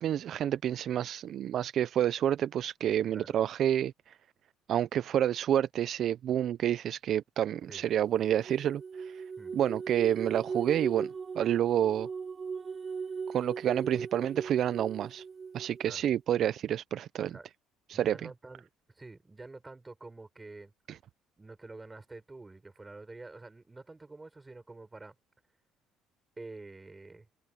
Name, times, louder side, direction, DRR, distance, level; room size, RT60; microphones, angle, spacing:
voice 1, 0.0-4.2 4.7-9.2 9.5-11.1 11.3-12.1 13.3-15.2 15.5-17.4 17.9-18.2 20.9-21.0, right 10 dB, 60° right, 0.5 m, -29 dB
sound 1, 8.0-15.8, right 5 dB, 35° right, 3.1 m, -38 dB
voice 2, 17.9-18.7 18.9-20.7 21.4-25.1 26.4-27.3, right 3 dB, 15° right, 6.1 m, -48 dB
supercardioid pair, 90°, 0 cm